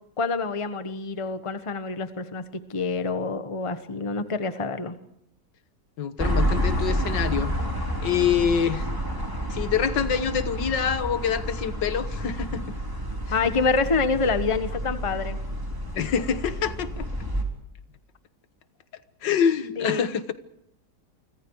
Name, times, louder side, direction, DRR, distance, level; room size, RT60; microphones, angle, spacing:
voice 1, 0.2-2.4 2.7-5.0 13.3-15.4 19.8-20.0, left 4 dB, 20° left, 10 dB, 1.2 m, -26 dB
voice 2, 6.0-7.5 8.0-8.9 9.5-12.6 13.3-13.4 16.0-17.1 19.2-20.2, left 7 dB, 85° left, 11 dB, 1.9 m, -25 dB
sound 1, 6.2-17.4, equal, 10° right, 3.8 m, -29 dB
29.5 x 25.0 x 4.8 m, 0.78 s
omnidirectional pair, 1.9 m